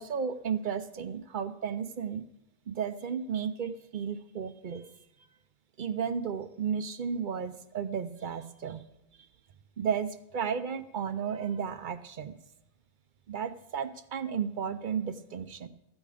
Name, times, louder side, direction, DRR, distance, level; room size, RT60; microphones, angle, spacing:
voice 1, 0.0-2.2 2.7-4.8 5.8-8.8 9.8-12.4 13.3-15.7, right 7 dB, 55° right, 11 dB, 0.7 m, -33 dB
14.0 x 8.7 x 4.9 m, 0.86 s
omnidirectional pair, 1.1 m